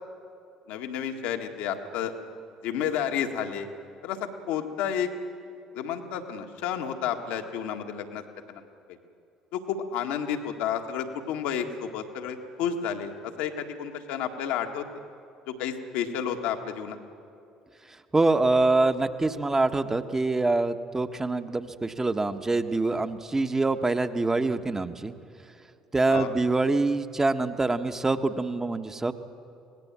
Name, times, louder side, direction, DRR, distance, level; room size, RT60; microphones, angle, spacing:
voice 1, 0.7-2.1 2.6-3.7 4.0-5.1 5.7-8.2 8.5-8.6 8.9-9.0 9.5-14.8 15.5-17.0 26.1-26.3, left 8 dB, 70° left, 5 dB, 1.8 m, -31 dB
voice 2, 18.1-25.1 25.9-29.1, right 3 dB, 20° right, 8 dB, 1.4 m, -25 dB
24.5 x 19.0 x 7.5 m, 2.7 s
hypercardioid pair, 55°, 2 cm